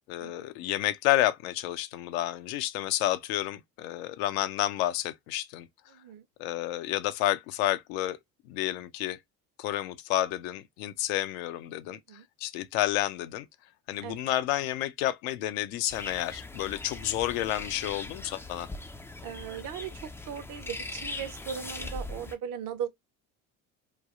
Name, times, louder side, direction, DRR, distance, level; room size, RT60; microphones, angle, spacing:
voice 1, 0.1-5.7 6.4-8.2 8.5-9.2 9.6-12.0 12.4-13.5 13.9-18.7, left 14 dB, 70° left, 0.6 m, -30 dB
voice 2, 5.9-6.2 11.9-12.2 14.0-14.2 19.2-22.9, right 8 dB, 50° right, 0.8 m, -38 dB
sound 1, 15.9-22.3, left 2 dB, 5° left, 0.3 m, -40 dB
3.2 x 2.3 x 2.4 m
hypercardioid pair, 70°, 42 cm